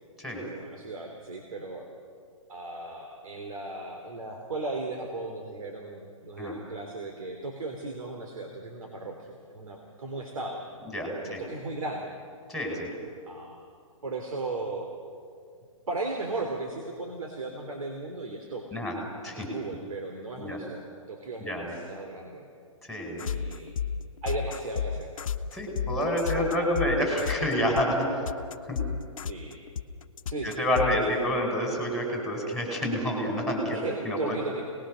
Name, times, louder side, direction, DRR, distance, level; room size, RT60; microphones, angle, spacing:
voice 1, 0.5-1.9 2.5-10.6 11.2-12.1 13.3-13.6 14.0-14.9 15.9-18.6 19.3-22.5 23.2-23.7 24.2-25.1 26.0-26.7 29.3-29.6 30.3-31.2 33.7-34.6, right 3 dB, 80° right, 2 dB, 3.4 m, -36 dB
voice 2, 10.9-11.4 12.5-12.9 18.7-19.0 19.2-19.5 20.4-20.6 21.4-21.7 22.9-23.2 25.5-28.1 28.7-28.8 30.4-34.4, equal, ahead, 0 dB, 5.2 m, -28 dB
sound 1, 23.2-30.9, left 7 dB, 75° left, 1.1 m, -31 dB
26.5 x 20.0 x 6.4 m, 2.2 s
hypercardioid pair, 145°, 18 cm